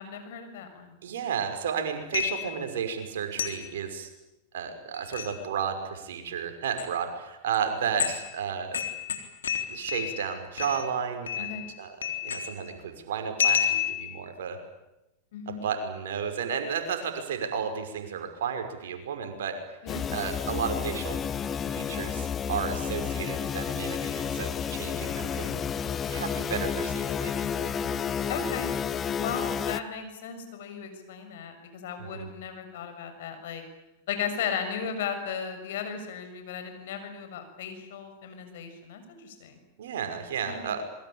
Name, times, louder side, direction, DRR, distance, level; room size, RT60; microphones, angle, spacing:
voice 1, 0.0-0.9 11.4-11.7 15.3-15.6 19.8-20.0 28.3-28.7 29.2-33.6 34.1-39.6 40.5-40.7, left 7 dB, 70° left, 8 dB, 6.7 m, -36 dB
voice 2, 1.0-4.1 4.5-8.8 9.7-11.5 11.8-11.9 12.2-14.6 15.5-19.6 20.1-21.2 21.7-25.6 26.1-27.3 27.6-27.7 32.0-32.3 39.8-40.8, right 7 dB, 75° right, 6 dB, 5.6 m, -32 dB
sound 1, 2.1-2.6 3.4-3.7 4.9-5.3 6.6-6.8 7.5-7.6 8.0-8.3 8.7-10.3 10.6-10.9 11.3-11.7 12.0-12.7 13.4-14.1, left 8 dB, 85° left, 3.9 m, -29 dB
sound 2, 19.9-29.8, left 7 dB, 30° left, 1.3 m, -31 dB
27.0 x 22.5 x 8.9 m, 0.93 s
hypercardioid pair, 105°, 0 cm